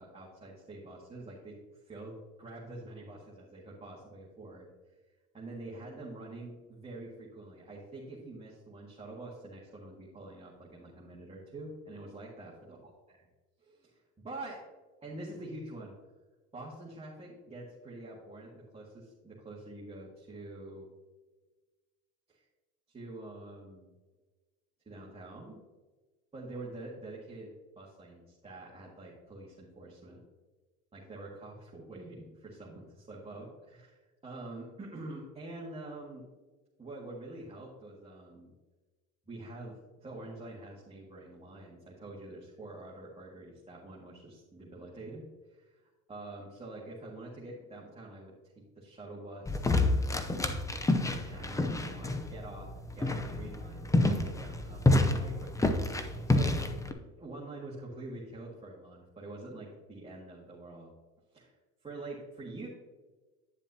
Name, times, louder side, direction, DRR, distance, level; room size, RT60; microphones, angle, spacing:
voice 1, 0.0-1.6 1.9-4.7 5.3-12.9 13.6-14.6 15.0-15.9 16.5-20.9 22.3-22.4 22.9-23.9 24.9-25.6 26.3-30.2 30.9-36.2 36.8-38.5 39.3-45.2 45.5-45.8 46.1-48.3 48.8-49.8 51.0-52.7 52.9-55.7 56.3-56.7 57.1-60.9 61.3-61.5 61.8-62.7, right 2 dB, 15° right, -5 dB, 1.8 m, -46 dB
sound 1, 49.5-56.9, left 2 dB, 10° left, 0.6 m, -29 dB
9.8 x 7.1 x 2.8 m, 1.3 s
supercardioid pair, 100°, 39 cm